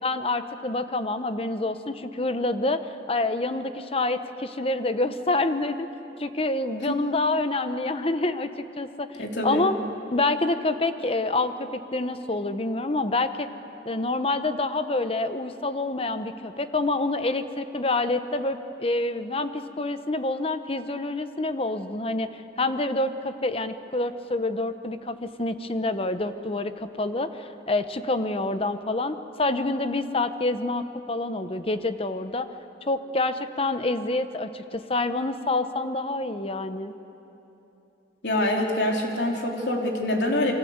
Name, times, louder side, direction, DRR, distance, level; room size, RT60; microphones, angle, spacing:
voice 1, 0.0-2.8 3.1-5.9 6.2-9.7 10.1-13.5 13.8-32.5 32.8-36.9, left 2 dB, 35° left, 10 dB, 1.0 m, -27 dB
voice 2, 9.2-9.7 38.2-40.5, left 1 dB, 80° left, 0 dB, 3.6 m, -25 dB
28.5 x 23.5 x 8.1 m, 3.0 s
head